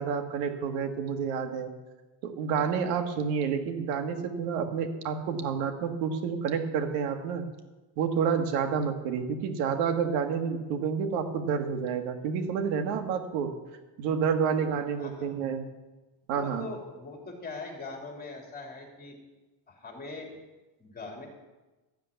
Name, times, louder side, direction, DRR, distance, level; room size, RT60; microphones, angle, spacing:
voice 1, 0.0-1.7 2.2-7.4 8.0-13.5 14.0-15.7 16.3-16.7, right 6 dB, 90° right, 6 dB, 1.8 m, -29 dB
voice 2, 15.0-15.3 16.3-19.2 19.7-20.4 20.8-21.3, left 3 dB, 20° left, 1 dB, 3.4 m, -41 dB
14.0 x 7.2 x 9.1 m, 1.1 s
cardioid pair, 140°, 47 cm